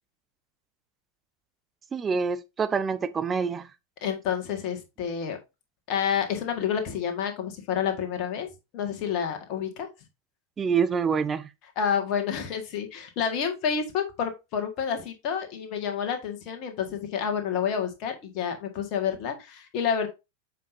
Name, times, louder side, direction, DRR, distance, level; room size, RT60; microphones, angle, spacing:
voice 1, 1.9-3.7 10.6-11.5, right 6 dB, 20° right, 0.6 m, -26 dB
voice 2, 4.0-5.4 5.9-8.5 8.7-9.9 11.7-20.1, left 7 dB, 40° left, 1.8 m, -29 dB
7.3 x 5.7 x 2.7 m
figure-of-eight pair, 90°, 0 cm